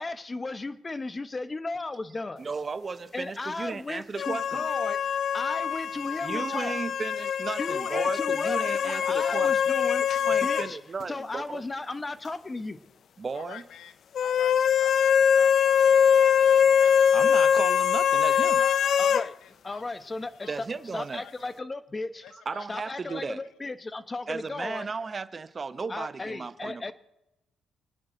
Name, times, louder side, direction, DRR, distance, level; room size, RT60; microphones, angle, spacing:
voice 1, 0.0-2.4 3.1-5.0 5.3-6.7 7.6-10.8 11.1-12.8 19.0-19.3 19.6-22.2 22.7-24.9 25.9-26.9, left 3 dB, 25° left, 1.1 m, -35 dB
voice 2, 2.4-4.6 6.2-9.5 10.2-11.4 13.2-13.6 17.1-18.6 20.5-21.2 22.5-23.4 24.3-26.9, right 4 dB, 35° right, 0.9 m, -35 dB
sound 1, 4.2-10.7 11.0-11.1 14.2-19.3, left 8 dB, 60° left, 0.5 m, -23 dB
voice 3, 13.3-16.3 16.8-17.0 18.1-19.8 20.3-21.5 22.2-22.7 23.1-23.3, left 10 dB, 75° left, 1.1 m, -48 dB
28.5 x 9.6 x 3.9 m
cardioid pair, 90°, 0 cm